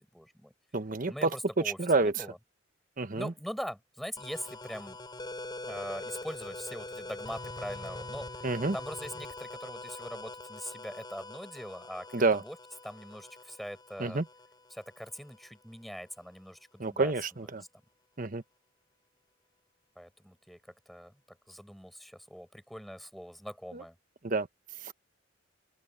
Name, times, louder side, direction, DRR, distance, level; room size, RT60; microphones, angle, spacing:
voice 1, 0.1-0.5 1.1-2.4 3.1-5.0 5.7-8.4 8.7-12.6 12.8-14.2 14.7-17.1 20.0-20.6 20.9-24.0, equal, ahead, 5.7 m, -42 dB
voice 2, 0.7-1.3 1.8-2.3 3.0-3.3 8.4-8.8 12.1-12.4 14.0-14.2 16.8-17.6 18.2-18.4 23.7-23.8 24.2-24.5 24.8-24.9, right 3 dB, 45° right, 1.1 m, -28 dB
sound 1, 4.2-15.6, left 2 dB, 25° left, 3.0 m, -43 dB
head